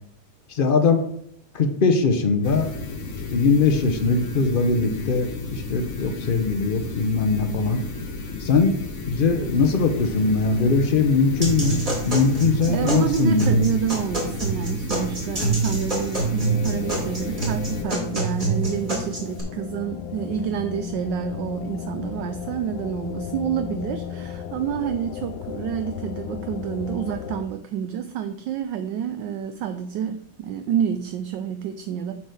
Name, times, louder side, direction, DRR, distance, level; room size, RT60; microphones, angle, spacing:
voice 1, 0.5-1.0 1.5-2.7 3.3-7.8 8.4-8.7 9.1-13.6, left 4 dB, 60° left, 6 dB, 0.5 m, -21 dB
sound 1, 2.4-17.8, left 3 dB, 40° left, 1.4 m, -34 dB
sound 2, 11.4-19.4, right 3 dB, 25° right, 2.9 m, -26 dB
voice 2, 12.3-32.2, right 9 dB, 75° right, 9 dB, 1.2 m, -28 dB
sound 3, 16.4-27.4, left 9 dB, 75° left, 1.2 m, -34 dB
8.0 x 4.5 x 6.7 m, 0.71 s
omnidirectional pair, 2.1 m